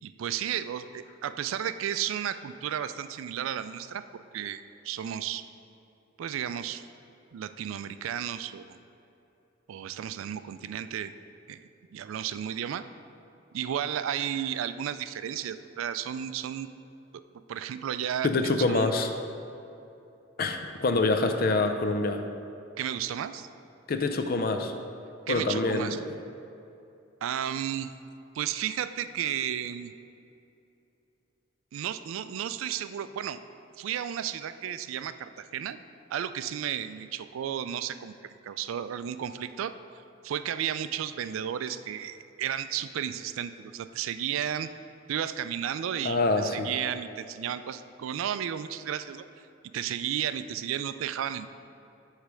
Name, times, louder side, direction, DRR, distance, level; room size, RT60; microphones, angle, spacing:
voice 1, 0.0-4.0 4.3-5.4 6.2-6.8 7.3-8.8 9.7-11.1 11.5-12.8 13.5-16.7 17.5-18.9 22.8-23.5 25.3-26.0 27.2-27.9 28.3-29.9 31.7-33.4 33.8-35.8 36.1-39.7 40.2-44.7 45.1-49.5 49.7-51.5, right 9 dB, 85° right, 12 dB, 0.3 m, -33 dB
voice 2, 18.2-19.1 20.4-22.2 23.9-24.7 25.3-25.9 46.0-46.7, left 3 dB, 50° left, 6 dB, 0.5 m, -26 dB
8.1 x 3.3 x 6.2 m, 2.8 s
head